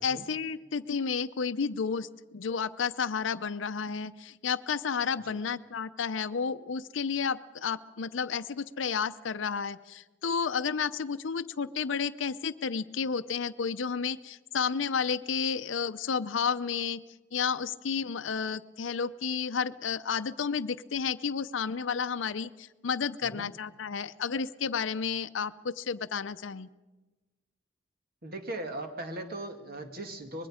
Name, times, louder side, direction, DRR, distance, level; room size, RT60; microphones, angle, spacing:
voice 1, 0.0-17.0 17.3-26.7, left 6 dB, 75° left, 11 dB, 0.6 m, -31 dB
voice 2, 28.2-30.5, right 1 dB, 50° right, 5 dB, 2.2 m, -39 dB
25.0 x 21.0 x 5.0 m, 1.2 s
head